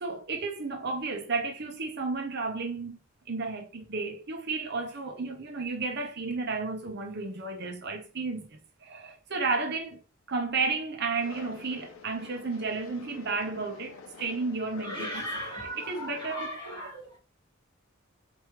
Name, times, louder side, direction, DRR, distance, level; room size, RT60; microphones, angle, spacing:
voice 1, 0.0-3.0 3.3-10.0 10.3-15.3 15.8-16.5, right 4 dB, 55° right, 0.9 m, -32 dB
sound 1, 11.2-16.4, left 4 dB, 85° left, 0.7 m, -47 dB
voice 2, 14.8-17.2, equal, 25° left, 2.5 m, -37 dB
4.5 x 3.2 x 3.0 m
head